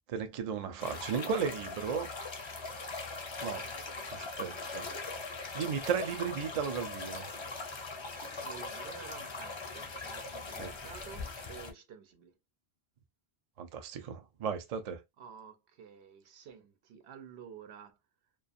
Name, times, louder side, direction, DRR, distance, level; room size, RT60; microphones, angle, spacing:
voice 1, 0.1-2.1 3.4-3.7 4.1-4.9 5.5-7.3 10.6-10.7 13.6-15.0, right 7 dB, 55° right, 0.4 m, -35 dB
sound 1, 0.8-11.7, left 3 dB, 40° left, 0.4 m, -41 dB
voice 2, 8.4-12.3 15.2-18.0, right 7 dB, 80° right, 0.9 m, -51 dB
2.4 x 2.3 x 2.5 m
omnidirectional pair, 1.1 m